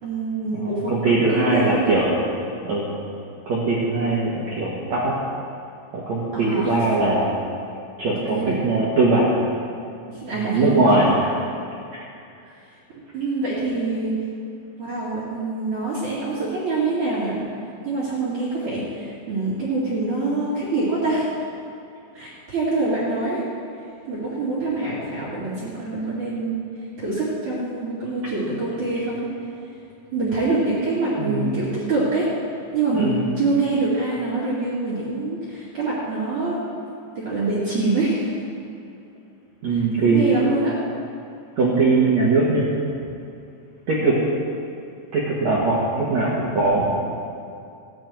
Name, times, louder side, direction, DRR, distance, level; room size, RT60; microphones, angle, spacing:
voice 1, 0.0-2.3 6.3-6.8 8.2-8.6 10.1-11.1 11.5-11.6 12.4-12.6 12.9-14.1 14.8-17.4 17.8-21.3 22.1-23.4 24.1-26.6 27.0-29.3 30.1-32.3 32.7-36.6 37.1-38.3 39.7-40.8, right 3 dB, 45° right, -6 dB, 3.1 m, -25 dB
voice 2, 0.5-2.2 2.6-2.9 3.4-5.1 5.9-7.3 8.0-9.3 10.5-11.2 11.9-12.0 31.2-31.6 32.9-33.2 39.6-40.2 41.6-43.0 43.9-44.2 45.1-46.9, right 3 dB, 70° right, -6 dB, 1.7 m, -21 dB
17.0 x 11.0 x 4.6 m, 2.5 s
omnidirectional pair, 5.8 m